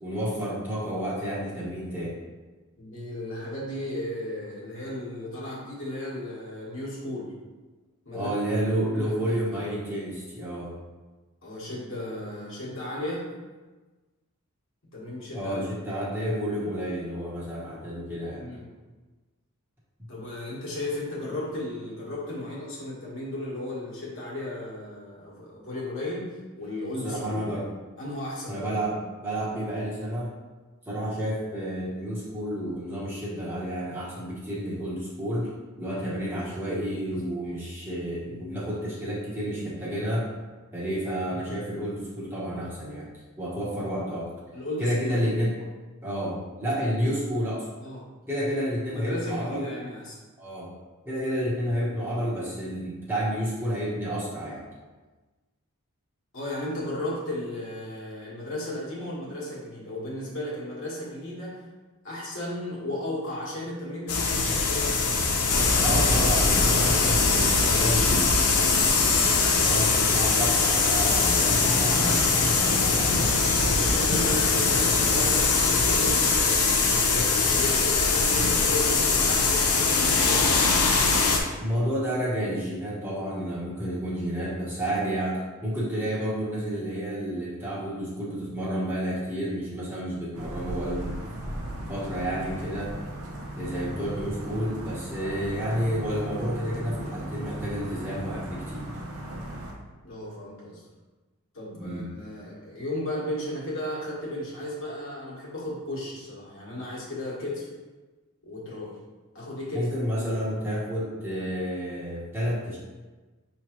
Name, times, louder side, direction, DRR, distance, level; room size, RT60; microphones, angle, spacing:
voice 1, 0.0-2.2 8.1-10.7 15.3-18.4 27.0-27.7 28.5-30.3 30.9-35.5 35.8-40.3 40.7-43.1 43.4-44.3 44.8-45.6 46.0-47.7 48.3-49.7 50.4-50.7 51.0-54.6 65.8-73.2 81.6-91.2 91.9-93.0 93.5-98.9 101.8-102.1 109.7-112.8, equal, 10° right, -7 dB, 0.9 m, -30 dB
voice 2, 2.8-7.3 8.0-8.3 8.9-9.6 11.4-13.3 14.9-15.7 18.4-18.7 20.1-27.5 28.0-28.6 30.9-31.0 44.5-45.3 47.8-48.3 48.9-50.2 56.3-61.7 62.0-65.2 73.7-80.5 100.0-100.9 101.5-107.7 108.4-109.0 109.3-109.9, left 1 dB, 60° left, -6 dB, 1.4 m, -35 dB
sound 1, 64.1-81.4, left 4 dB, 85° left, 0.7 m, -22 dB
sound 2, 90.3-99.7, right 1 dB, 75° right, 0.7 m, -37 dB
5.5 x 3.1 x 3.0 m, 1.2 s
head